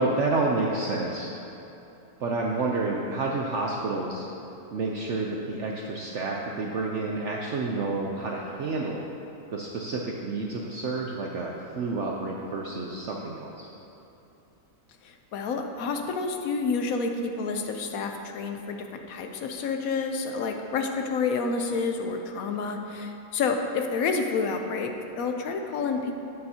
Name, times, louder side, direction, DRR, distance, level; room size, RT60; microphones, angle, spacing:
voice 1, 0.0-1.3 2.2-4.3 4.7-9.0 9.5-13.7, right 3 dB, 60° right, -1 dB, 0.8 m, -29 dB
voice 2, 15.0-26.1, left 4 dB, 70° left, 4 dB, 1.0 m, -29 dB
11.0 x 8.8 x 2.8 m, 2.9 s
omnidirectional pair, 1.6 m